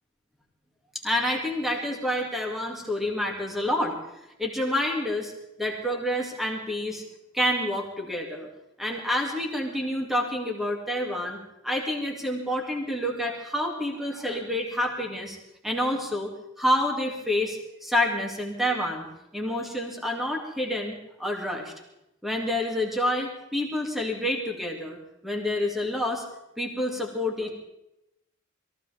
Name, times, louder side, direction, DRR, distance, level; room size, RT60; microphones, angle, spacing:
voice 1, 1.0-3.9 4.4-5.3 5.6-7.0 7.3-8.5 8.8-11.4 11.6-15.4 15.6-16.3 16.6-19.1 19.3-21.7 22.2-25.0 25.2-26.2 26.6-27.5, left 1 dB, ahead, 0 dB, 2.5 m, -28 dB
22.5 x 15.5 x 3.6 m, 0.87 s
head